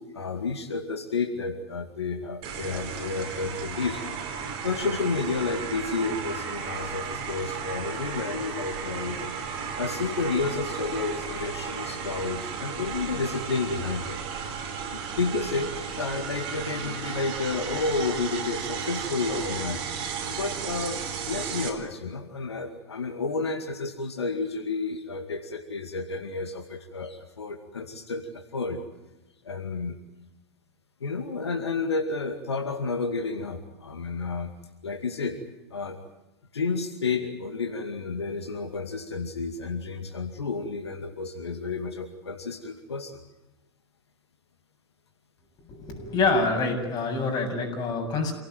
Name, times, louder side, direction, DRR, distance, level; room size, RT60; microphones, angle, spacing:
voice 1, 0.0-4.1 4.6-9.3 9.8-14.2 14.9-19.8 20.3-28.8 29.4-30.0 31.0-34.5 34.8-35.4 35.7-36.0 36.5-43.2, left 4 dB, 75° left, 5 dB, 2.3 m, -31 dB
sound 1, 2.4-21.7, right 6 dB, 40° right, 4.5 m, -34 dB
voice 2, 45.7-48.3, left 3 dB, 30° left, 2 dB, 7.6 m, -26 dB
28.0 x 18.0 x 9.4 m, 1.0 s
figure-of-eight pair, 100°, 14 cm